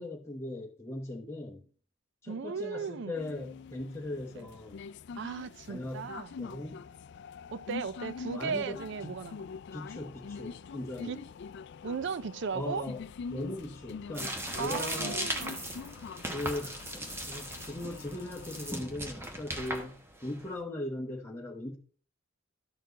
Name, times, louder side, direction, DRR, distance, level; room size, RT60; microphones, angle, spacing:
voice 1, 0.0-1.6 2.2-4.8 5.7-6.1 6.4-6.9 8.3-9.2 9.7-11.2 12.5-13.0 13.3-15.2 16.3-16.9 17.3-21.8, left 1 dB, 10° left, 1.0 m, -39 dB
voice 2, 2.3-3.2 4.4-4.5 5.2-6.3 7.5-9.5 11.0-11.2 11.8-12.9 14.6-15.8, right 5 dB, 55° right, 0.4 m, -36 dB
sound 1, 3.1-18.8, left 5 dB, 55° left, 0.3 m, -45 dB
sound 2, 14.1-20.5, right 1 dB, 10° right, 0.9 m, -38 dB
13.0 x 4.4 x 4.0 m
head